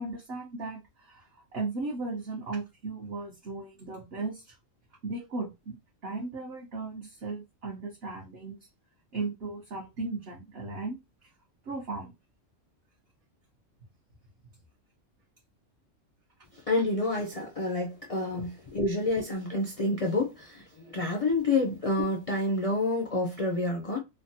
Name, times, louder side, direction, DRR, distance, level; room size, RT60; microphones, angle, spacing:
voice 1, 0.0-4.6 5.0-5.8 6.0-8.6 9.1-11.3 11.6-12.1, right 3 dB, 60° right, 0.9 m, -36 dB
voice 2, 16.7-24.0, left 2 dB, 65° left, 0.3 m, -28 dB
3.3 x 2.1 x 2.6 m
omnidirectional pair, 1.3 m